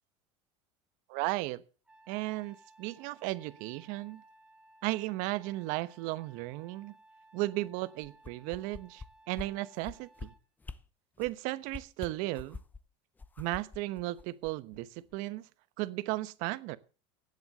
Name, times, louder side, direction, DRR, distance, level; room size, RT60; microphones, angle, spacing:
voice 1, 1.1-1.6 2.1-4.2 4.8-6.9 7.3-10.3 11.2-12.6 13.4-15.5 15.8-16.8, right 19 dB, 60° right, 1.1 m, -35 dB
Trumpet, 1.8-10.4, right 2 dB, 5° right, 2.8 m, -60 dB
sound 1, 8.0-9.1 9.4-9.5 9.8-10.3 10.6-10.8 11.2-11.4 11.7-12.8 13.2-14.8 15.1-15.2, left 4 dB, 10° left, 0.8 m, -44 dB
17.5 x 8.0 x 6.6 m
supercardioid pair, 135°, 15 cm